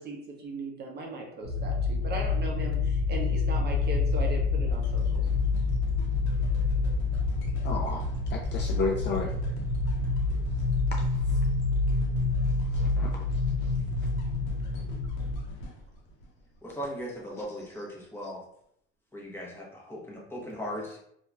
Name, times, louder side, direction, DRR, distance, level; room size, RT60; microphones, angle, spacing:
voice 1, 0.0-5.3 20.7-20.8, right 2 dB, 35° right, 0 dB, 0.7 m, -38 dB
sound 1, 1.4-15.4, left 3 dB, 70° right, 0.7 m, -27 dB
sound 2, 4.7-16.9 17.4-17.5, equal, 75° left, 0.8 m, -42 dB
voice 2, 7.6-9.3 11.0-11.4 12.7-13.2 13.6-13.7 17.4-17.5 18.2-18.3, left 4 dB, 35° left, 1 dB, 0.4 m, -33 dB
voice 3, 16.6-18.4 19.1-21.0, equal, 5° left, -4 dB, 1.0 m, -38 dB
2.8 x 2.5 x 2.2 m, 0.73 s
supercardioid pair, 105°, 31 cm